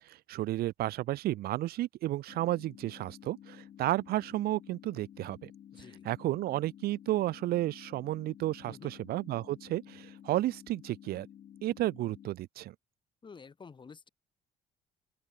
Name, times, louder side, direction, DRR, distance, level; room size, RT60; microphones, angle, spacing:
voice 1, 0.1-5.5 6.0-11.3 11.6-12.7, right 15 dB, 65° right, 0.6 m, -32 dB
sound 1, 2.3-12.3, left 10 dB, 50° left, 1.7 m, -52 dB
voice 2, 5.7-6.1 8.6-8.9 13.2-14.1, left 5 dB, 30° left, 2.1 m, -50 dB
open air
cardioid pair, 110°, 17 cm